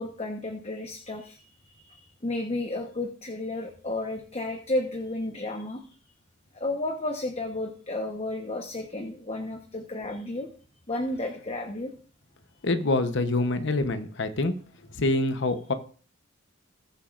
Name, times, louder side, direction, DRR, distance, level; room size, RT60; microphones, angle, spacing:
voice 1, 0.0-1.5 1.8-5.8 6.5-10.5 10.9-11.9, left 2 dB, 30° left, 4 dB, 1.0 m, -32 dB
voice 2, 12.6-14.5 15.0-15.7, left 2 dB, 60° left, 9 dB, 0.9 m, -25 dB
19.5 x 7.2 x 2.5 m, 0.41 s
head